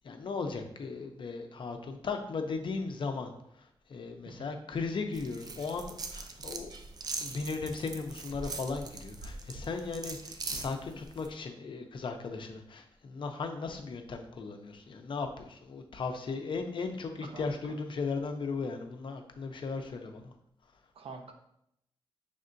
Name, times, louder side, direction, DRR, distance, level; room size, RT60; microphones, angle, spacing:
voice 1, 0.0-3.3 3.5-6.7 7.2-20.3, left 4 dB, 60° left, 5 dB, 0.5 m, -37 dB
sound 1, 5.1-11.3, right 3 dB, 45° right, 0.4 m, -41 dB
voice 2, 20.9-21.3, right 4 dB, 80° right, 4 dB, 0.6 m, -45 dB
5.4 x 3.5 x 2.6 m, 0.75 s
wide cardioid pair, 150°, 10 cm